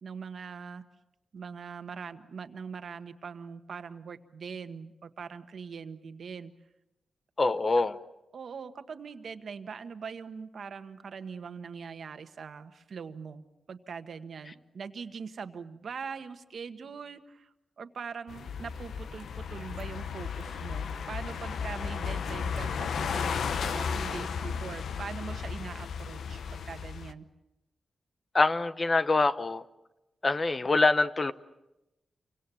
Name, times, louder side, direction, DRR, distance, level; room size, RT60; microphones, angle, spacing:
voice 1, 0.0-0.8 1.3-6.5 7.8-7.9 8.3-27.2, right 6 dB, 65° right, 1.4 m, -42 dB
voice 2, 7.4-8.0 28.3-29.6 30.2-31.3, left 3 dB, 35° left, 0.9 m, -25 dB
sound 1, 18.3-27.1, left 6 dB, 90° left, 0.9 m, -34 dB
28.5 x 25.0 x 7.0 m
wide cardioid pair, 105°, 0 cm